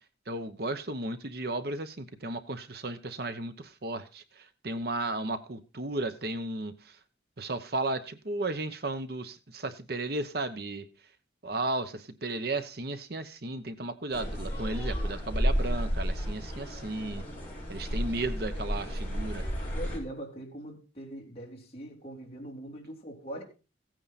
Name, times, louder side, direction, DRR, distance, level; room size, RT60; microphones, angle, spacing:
voice 1, 0.3-6.9 7.4-10.8 11.4-17.2 17.7-19.4, right 2 dB, 55° right, 1.0 m, -34 dB
sound 1, 14.1-20.0, equal, 10° left, 6.2 m, -32 dB
voice 2, 19.7-23.4, right 1 dB, 30° left, 3.5 m, -42 dB
16.0 x 9.1 x 4.2 m
head